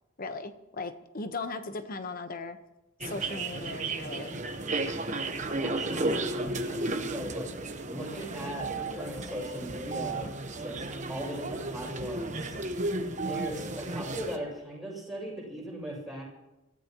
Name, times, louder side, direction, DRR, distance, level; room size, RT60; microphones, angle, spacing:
voice 1, 0.2-2.6 3.0-4.4, left 3 dB, 45° left, 9 dB, 1.1 m, -38 dB
sound 1, 3.0-14.4, right 2 dB, 35° right, 1.2 m, -33 dB
voice 2, 5.5-16.2, equal, ahead, -5 dB, 6.9 m, -39 dB
27.0 x 14.5 x 3.1 m, 1.0 s
head